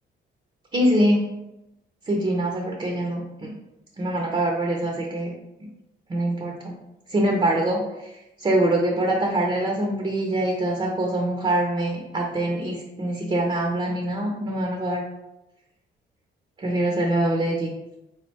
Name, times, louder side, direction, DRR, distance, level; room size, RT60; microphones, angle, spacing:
voice 1, 0.7-1.2 2.1-3.5 4.0-5.3 5.6-5.7 6.1-6.8 7.1-15.0 16.6-17.7, right 1 dB, 30° right, 1 dB, 0.6 m, -24 dB
3.7 x 3.2 x 2.9 m, 0.93 s
cardioid pair, 90°, 20 cm